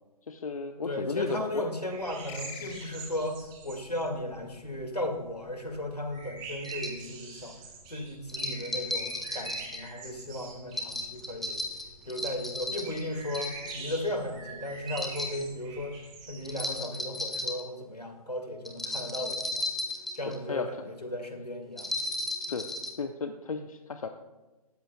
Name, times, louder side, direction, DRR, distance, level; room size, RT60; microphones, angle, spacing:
voice 1, 0.3-1.6 20.3-20.8 22.5-22.7 23.0-24.1, left 5 dB, 65° left, 7 dB, 0.7 m, -34 dB
voice 2, 0.8-7.6 7.9-11.6 12.0-16.0 16.3-19.7 20.1-22.0 22.5-22.6, left 1 dB, 85° left, 5 dB, 2.1 m, -36 dB
sound 1, 1.9-5.1 5.4-16.6, right 4 dB, 20° right, 2.8 m, -45 dB
sound 2, 2.3-3.5, left 8 dB, 25° left, 1.2 m, -45 dB
sound 3, 6.6-7.0 8.3-9.8 10.7-13.0 13.3-14.0 14.9-15.4 16.4-17.6 18.6-20.4 21.8-22.9, left 1 dB, ahead, 0.8 m, -34 dB
18.0 x 13.0 x 2.3 m, 1.2 s
figure-of-eight pair, 125°, 20 cm